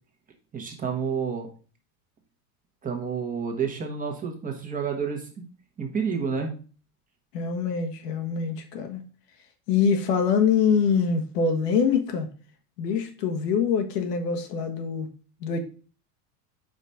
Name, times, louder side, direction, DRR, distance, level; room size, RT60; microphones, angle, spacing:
voice 1, 0.5-1.5 2.8-5.2 5.8-6.5, right 6 dB, 15° right, 1.1 m, -29 dB
voice 2, 7.3-9.0 9.7-12.3 12.8-15.1 15.4-15.6, left 6 dB, 85° left, 1.4 m, -24 dB
5.1 x 3.9 x 5.5 m
supercardioid pair, 140°, 46 cm